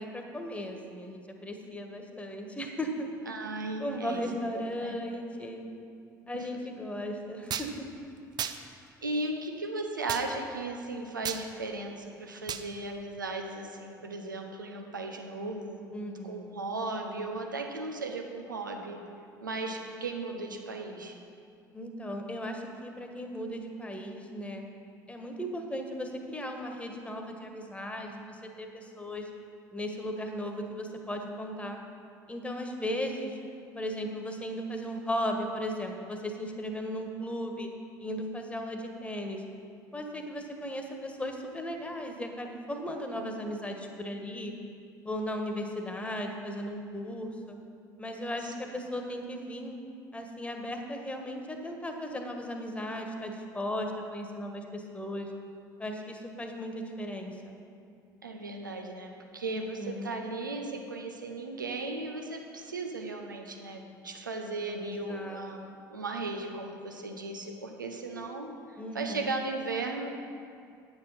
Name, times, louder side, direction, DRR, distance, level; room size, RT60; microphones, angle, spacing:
voice 1, 0.0-3.1 3.8-5.7 6.3-7.9 15.9-16.5 21.7-24.6 25.1-29.3 29.7-31.8 32.3-33.4 33.7-37.7 38.0-39.4 39.9-44.5 45.0-47.6 48.0-49.8 50.1-55.3 55.8-57.6 59.5-60.1 64.8-65.7 68.8-69.3, equal, 10° left, 3 dB, 1.4 m, -36 dB
voice 2, 3.3-4.2 4.5-5.0 6.4-6.5 9.0-15.8 16.2-19.0 19.4-21.2 48.4-48.5 58.2-70.1, right 2 dB, 90° right, 3 dB, 0.9 m, -36 dB
sound 1, 7.5-7.7 8.4-8.6 10.1-10.2 11.2-11.4 12.5-12.7, right 9 dB, 40° right, 0.6 m, -33 dB
9.7 x 7.1 x 5.7 m, 2.4 s
figure-of-eight pair, 60°, 10 cm